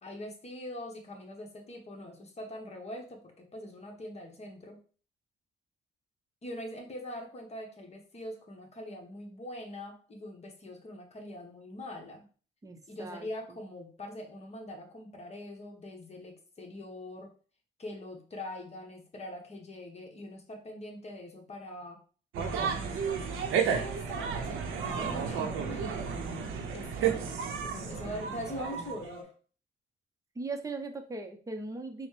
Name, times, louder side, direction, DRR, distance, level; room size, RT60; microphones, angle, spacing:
voice 1, 0.0-4.8 6.4-12.3 12.9-17.3 17.8-22.0 22.4-26.3 26.7-29.3, left 1 dB, 35° left, 2 dB, 1.0 m, -43 dB
voice 2, 12.6-13.3 27.5-27.7 30.4-32.1, right 3 dB, 15° right, 5 dB, 0.6 m, -39 dB
sound 1, 22.3-29.2, right 6 dB, 85° right, 0.6 m, -32 dB
4.0 x 2.1 x 3.2 m, 0.40 s
cardioid pair, 90°, 20 cm